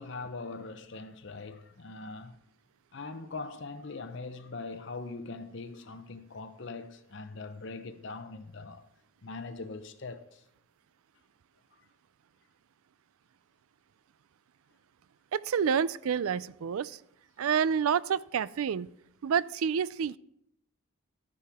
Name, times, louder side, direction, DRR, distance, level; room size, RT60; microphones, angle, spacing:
voice 1, 0.0-2.4 2.9-8.8 9.2-10.4, left 3 dB, 55° left, 0.7 m, -41 dB
voice 2, 15.3-17.0 17.4-18.9 19.2-20.2, right 7 dB, 80° right, 0.4 m, -28 dB
11.5 x 9.9 x 3.5 m
head